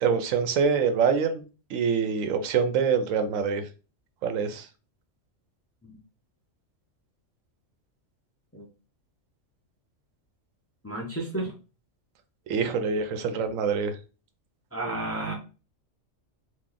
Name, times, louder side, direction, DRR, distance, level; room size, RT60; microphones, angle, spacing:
voice 1, 0.0-1.4 1.7-3.6 4.2-4.7 12.5-13.9, right 6 dB, 85° right, 8 dB, 1.0 m, -25 dB
voice 2, 10.8-11.5 14.7-15.3, right 2 dB, 15° left, -2 dB, 0.5 m, -32 dB
3.0 x 2.4 x 3.8 m, 0.34 s
omnidirectional pair, 1.3 m